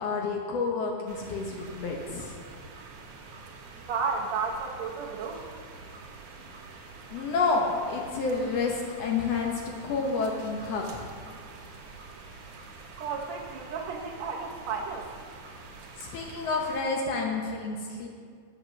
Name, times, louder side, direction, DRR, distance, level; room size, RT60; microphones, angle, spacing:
voice 1, 0.0-2.3 7.1-11.0 16.0-18.1, left 4 dB, 70° left, 0 dB, 1.8 m, -29 dB
sound 1, 1.1-16.8, right 3 dB, 85° right, 2.6 m, -46 dB
voice 2, 3.9-5.4 13.0-15.1, right 5 dB, 70° right, -1 dB, 2.0 m, -32 dB
7.3 x 7.0 x 6.4 m, 2.1 s
omnidirectional pair, 3.4 m